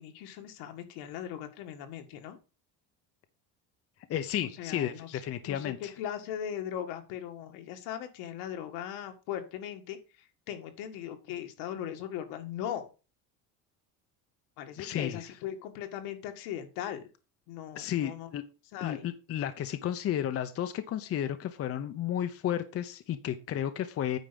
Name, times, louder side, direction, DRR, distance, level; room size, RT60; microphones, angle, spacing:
voice 1, 0.0-2.4 4.6-5.2 5.5-10.0 10.5-12.9 14.6-17.0 17.5-18.3 18.7-19.1, left 10 dB, 80° left, 6 dB, 1.9 m, -39 dB
voice 2, 4.1-5.9 14.8-15.3 17.7-18.4 18.8-24.2, left 10 dB, 40° left, 9 dB, 0.8 m, -33 dB
9.2 x 4.8 x 6.9 m, 0.32 s
cardioid pair, 135°, 38 cm